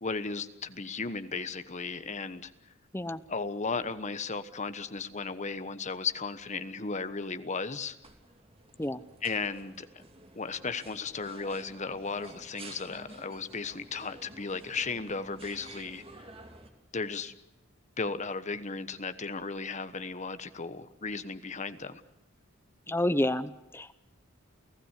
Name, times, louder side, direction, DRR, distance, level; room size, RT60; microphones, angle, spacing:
voice 1, 0.0-2.5 3.3-8.0 9.2-10.0 10.3-16.0 16.9-17.3 18.0-22.0, left 4 dB, 35° left, 11 dB, 1.2 m, -35 dB
sound 1, 7.5-16.7, right 2 dB, 30° right, 2.5 m, -51 dB
voice 2, 22.9-23.9, left 1 dB, 10° left, 13 dB, 0.8 m, -29 dB
29.5 x 16.0 x 8.3 m, 0.91 s
head